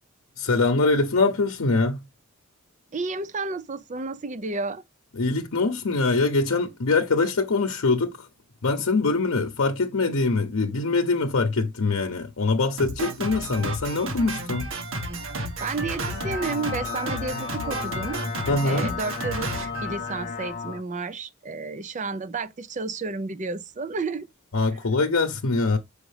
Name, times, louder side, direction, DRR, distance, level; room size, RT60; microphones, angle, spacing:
voice 1, 0.4-2.0 5.1-8.3 8.6-14.7 18.5-18.9 24.5-25.8, left 3 dB, 85° left, 0.7 m, -23 dB
voice 2, 2.9-4.8 15.4-18.2 18.6-24.3, right 3 dB, 35° right, 0.5 m, -31 dB
Drum kit, 12.8-20.6, right 1 dB, 75° right, 1.5 m, -32 dB
sound 1, 15.9-20.8, left 6 dB, 35° left, 0.5 m, -34 dB
6.3 x 5.0 x 3.2 m
head